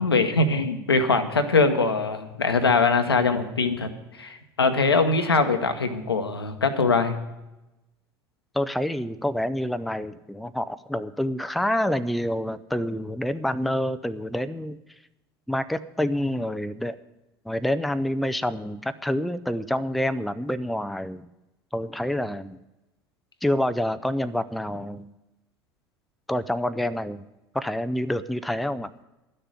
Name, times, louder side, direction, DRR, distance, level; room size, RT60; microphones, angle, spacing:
voice 1, 0.0-3.9 4.2-7.2, left 4 dB, 85° left, 7 dB, 1.0 m, -22 dB
voice 2, 8.5-14.8 15.5-17.0 17.5-21.3 21.7-22.6 23.4-25.1 26.3-27.2 27.5-28.9, left 1 dB, ahead, 11 dB, 0.5 m, -27 dB
12.0 x 6.7 x 9.4 m, 0.98 s
figure-of-eight pair, 70°, 13 cm